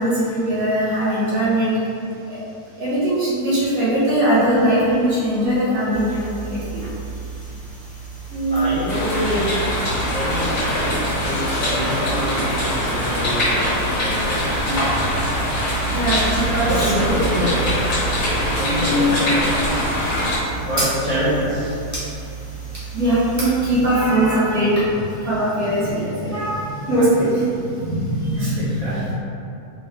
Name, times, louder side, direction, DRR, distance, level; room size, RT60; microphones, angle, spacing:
voice 1, 0.0-1.7 2.3-2.4 2.8-6.9 8.3-8.8 14.7-14.8 15.9-16.9 18.3-19.6 22.9-24.9 25.2-29.1, right 1 dB, 65° right, -11 dB, 1.6 m, -21 dB
sound 1, 5.9-24.1, right 5 dB, 15° right, 0.8 m, -32 dB
voice 2, 8.5-9.6 10.0-14.4 16.7-17.8 18.4-19.8 20.7-21.8 26.3-26.4 28.6-29.0, equal, 55° left, -11 dB, 0.4 m, -26 dB
sound 2, 8.9-20.4, left 1 dB, 70° left, 1.6 m, -23 dB
4.3 x 2.3 x 3.3 m, 2.7 s
omnidirectional pair, 1.6 m